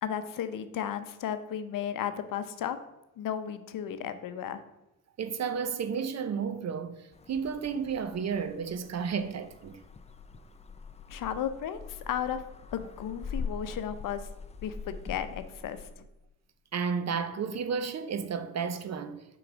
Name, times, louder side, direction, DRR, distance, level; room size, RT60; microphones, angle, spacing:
voice 1, 0.0-2.8 3.2-4.6 11.1-12.4 12.7-14.3 14.6-15.9, left 9 dB, 65° left, 0.6 m, -34 dB
voice 2, 5.2-9.8 16.7-19.2, right 6 dB, 50° right, 0.7 m, -32 dB
sound 1, 7.1-15.9, left 5 dB, 20° left, 0.4 m, -43 dB
6.0 x 3.9 x 5.0 m
cardioid pair, 75°, 35 cm